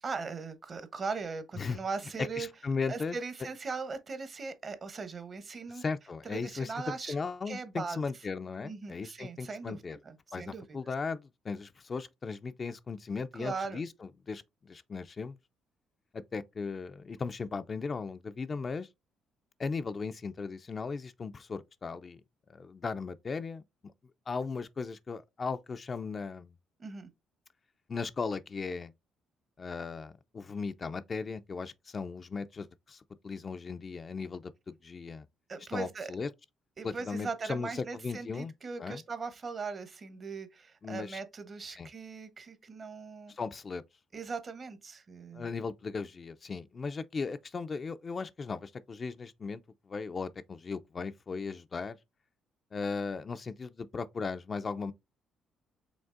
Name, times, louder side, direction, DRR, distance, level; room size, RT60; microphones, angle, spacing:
voice 1, 0.0-2.5 2.9-5.8 6.2-7.2 7.5-8.0 8.6-10.8 13.3-13.8 26.8-27.1 35.5-36.1 36.8-43.3 44.1-45.5, right 4 dB, 40° right, 0.8 m, -39 dB
voice 2, 2.2-3.2 5.7-10.0 10.3-15.4 16.1-18.9 19.6-22.2 22.5-23.6 24.3-26.5 27.9-28.9 29.6-34.5 34.8-35.3 35.7-36.3 36.8-38.5 38.8-39.0 40.8-41.2 41.8-41.9 43.3-43.8 45.3-49.6 49.9-52.0 52.7-54.9, left 4 dB, 40° left, 0.3 m, -37 dB
5.1 x 3.2 x 2.4 m
supercardioid pair, 75°, 0 cm